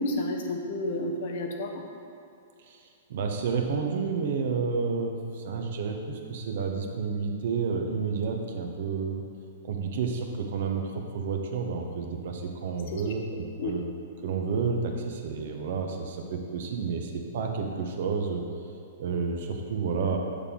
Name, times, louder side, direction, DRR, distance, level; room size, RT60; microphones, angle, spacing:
voice 1, 0.0-1.8 12.9-13.0 13.6-13.7, left 2 dB, 60° left, 2 dB, 0.9 m, -30 dB
voice 2, 3.1-9.2 9.6-13.8 14.2-18.4 19.0-20.2, right 5 dB, 60° right, 3 dB, 0.9 m, -30 dB
6.7 x 6.6 x 3.8 m, 2.5 s
hypercardioid pair, 115°, 0 cm